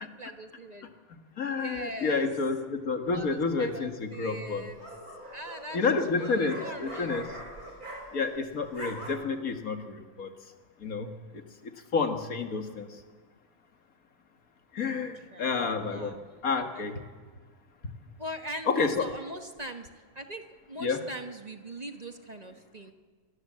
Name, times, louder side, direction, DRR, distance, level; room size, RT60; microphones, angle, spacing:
voice 1, 0.0-0.9 1.5-2.3 3.1-4.9 5.3-7.3 14.9-16.3 16.7-16.9 18.2-19.9 20.1-22.9, right 1 dB, 30° right, 6 dB, 1.3 m, -41 dB
voice 2, 1.4-4.7 5.7-7.2 8.1-10.3 10.8-11.1 11.9-12.9 14.7-16.2 16.4-17.0 18.7-19.0 20.8-21.0, left 4 dB, 75° left, 6 dB, 2.2 m, -29 dB
sound 1, 3.1-3.6 4.5-8.4 8.6-9.1, right 1 dB, 85° right, 6.0 m, -43 dB
26.5 x 19.5 x 7.6 m, 1.5 s
omnidirectional pair, 1.5 m